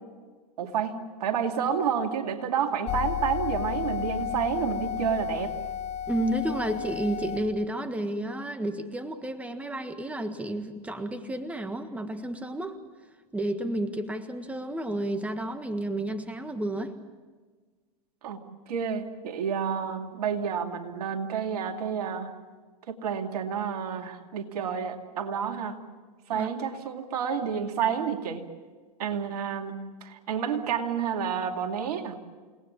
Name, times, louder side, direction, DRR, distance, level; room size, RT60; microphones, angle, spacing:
voice 1, 0.6-5.5 18.2-18.4 18.7-22.3 22.9-25.8 26.3-28.5 29.0-32.2, right 7 dB, 70° right, 5 dB, 2.5 m, -30 dB
sound 1, 2.9-7.4, left 9 dB, 30° left, 4.5 m, -32 dB
voice 2, 6.1-12.8 13.3-17.0 26.3-26.5, right 1 dB, 5° right, 9 dB, 1.6 m, -31 dB
29.5 x 19.0 x 7.3 m, 1.4 s
hypercardioid pair, 105°, 21 cm